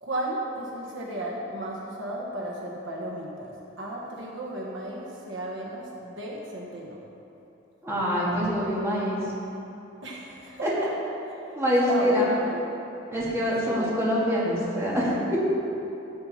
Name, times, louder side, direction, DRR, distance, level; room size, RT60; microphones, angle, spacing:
voice 1, 0.0-7.0 10.0-10.9 11.9-12.6 13.6-14.1, right 1 dB, 65° right, -2 dB, 1.3 m, -34 dB
voice 2, 7.8-9.3 10.6-10.7 11.6-12.3 13.1-15.5, equal, 15° right, -8 dB, 2.1 m, -25 dB
14.0 x 7.6 x 4.3 m, 2.9 s
head